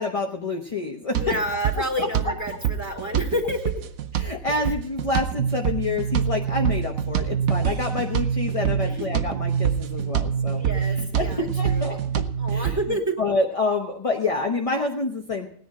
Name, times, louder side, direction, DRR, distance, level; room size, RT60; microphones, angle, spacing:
voice 1, 0.0-1.4 1.7-2.6 4.1-12.2 12.5-15.5, left 3 dB, 25° left, 2 dB, 1.0 m, -28 dB
sound 1, 1.1-12.8, right 10 dB, 90° right, 1.2 m, -28 dB
voice 2, 1.2-3.8 10.6-12.0 12.4-13.2, equal, 10° right, -1 dB, 2.8 m, -29 dB
sound 2, 5.4-12.9, right 6 dB, 65° right, 1.1 m, -27 dB
18.0 x 10.0 x 4.9 m, 0.63 s
omnidirectional pair, 1.4 m